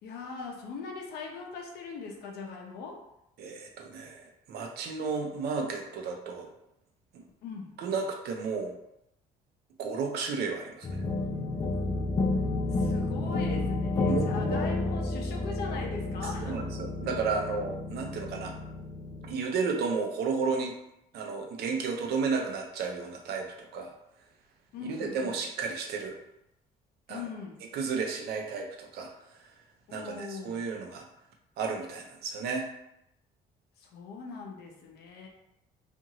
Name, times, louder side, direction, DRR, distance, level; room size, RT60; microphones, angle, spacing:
voice 1, 0.0-3.0 7.4-7.7 12.7-16.6 24.7-25.4 27.1-27.6 29.9-30.7 33.8-35.3, left 4 dB, 75° left, 1 dB, 0.7 m, -40 dB
voice 2, 3.4-6.5 7.1-7.2 7.8-8.7 9.8-11.0 14.1-14.6 16.4-18.5 19.2-20.7 21.1-23.9 24.9-26.2 27.1-27.2 27.7-29.5 29.9-31.0 31.6-32.7, right 5 dB, 70° right, 2 dB, 0.6 m, -33 dB
sound 1, 10.8-19.3, left 2 dB, 25° left, 0.4 m, -31 dB
2.6 x 2.5 x 2.8 m, 0.83 s
cardioid pair, 110°, 17 cm